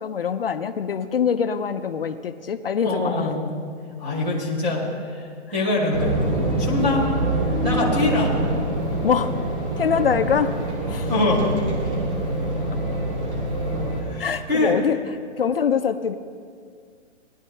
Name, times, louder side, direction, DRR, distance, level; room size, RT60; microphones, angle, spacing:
voice 1, 0.0-3.3 9.0-9.4 9.8-10.5 10.9-11.1 14.2-15.0 15.4-16.1, left 7 dB, 55° left, 9 dB, 0.5 m, -23 dB
voice 2, 2.8-3.5 4.0-6.2 6.6-7.1 7.6-8.4 11.1-11.6 14.0-14.8, left 2 dB, 5° right, -5 dB, 0.6 m, -24 dB
sound 1, 5.9-14.0, right 1 dB, 25° right, 1.6 m, -25 dB
17.5 x 11.0 x 3.2 m, 2.1 s
hypercardioid pair, 175°, 36 cm